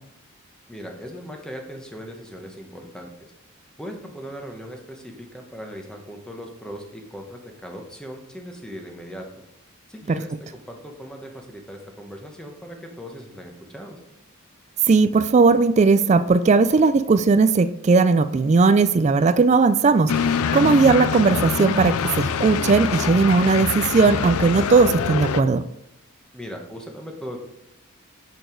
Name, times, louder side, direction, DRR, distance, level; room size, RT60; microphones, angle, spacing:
voice 1, 0.7-3.3 3.8-9.3 9.9-14.0 26.3-27.4, equal, 5° left, 2 dB, 1.1 m, -38 dB
voice 2, 14.9-25.6, right 4 dB, 30° right, 13 dB, 0.3 m, -17 dB
sound 1, 20.1-25.4, left 6 dB, 85° left, 0.4 m, -25 dB
6.8 x 6.4 x 4.6 m, 0.83 s
head